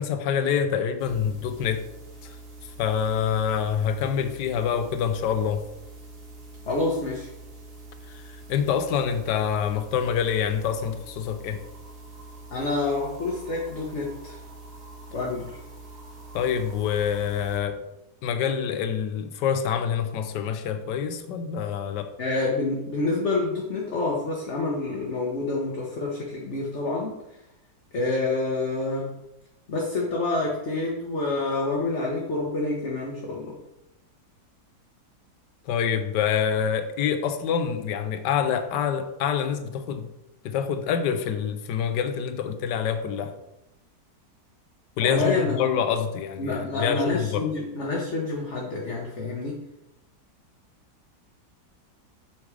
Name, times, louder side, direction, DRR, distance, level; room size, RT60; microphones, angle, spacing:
voice 1, 0.0-1.8 2.2-2.4 2.8-5.6 8.1-11.6 16.3-17.8 18.2-22.1 35.7-40.1 40.4-43.4 45.0-47.5, left 7 dB, 80° left, 1.4 m, -26 dB
sound 1, 1.0-17.6, right 2 dB, 50° right, 2.4 m, -45 dB
voice 2, 6.7-7.3 12.5-14.4 15.1-15.6 22.2-27.1 27.9-29.1 29.7-33.6 45.0-45.8 46.4-49.6, left 3 dB, 45° left, 1.6 m, -28 dB
8.1 x 6.2 x 4.9 m
omnidirectional pair, 1.8 m